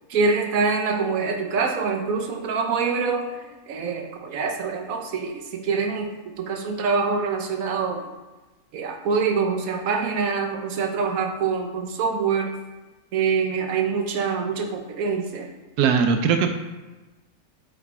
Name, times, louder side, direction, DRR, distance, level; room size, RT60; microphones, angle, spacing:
voice 1, 0.1-3.2 3.7-6.1 6.4-8.0 8.7-12.5 13.1-15.5, right 5 dB, 65° right, 3 dB, 1.3 m, -25 dB
voice 2, 15.8-16.5, right 6 dB, 90° right, 6 dB, 1.2 m, -19 dB
8.1 x 4.8 x 4.3 m, 1.2 s
omnidirectional pair, 1.6 m